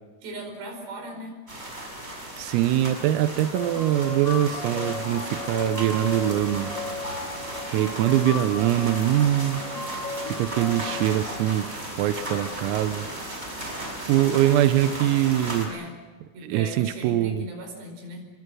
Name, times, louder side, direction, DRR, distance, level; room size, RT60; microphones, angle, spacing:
voice 1, 0.2-1.3 15.4-16.0 16.3-18.2, right 1 dB, 55° right, 3 dB, 7.1 m, -38 dB
sound 1, 1.5-15.7, right 1 dB, 10° right, 5.5 m, -35 dB
voice 2, 2.4-6.8 7.7-9.7 10.3-13.1 14.1-15.7 16.4-17.5, right 12 dB, 90° right, 10 dB, 3.6 m, -23 dB
sound 2, 3.5-11.5, left 3 dB, 35° left, 1.9 m, -36 dB
27.5 x 23.5 x 6.3 m, 1.4 s
omnidirectional pair, 5.9 m